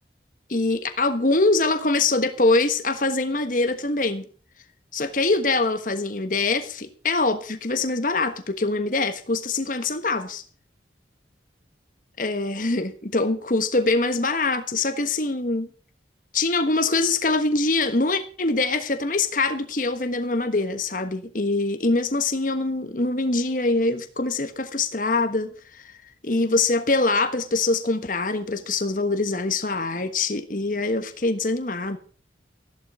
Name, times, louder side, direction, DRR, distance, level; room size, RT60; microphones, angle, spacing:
voice 1, 0.5-4.3 4.9-10.4 12.2-15.7 16.3-25.9 26.2-32.0, left 3 dB, 45° left, 9 dB, 1.4 m, -24 dB
14.5 x 11.5 x 4.9 m, 0.42 s
head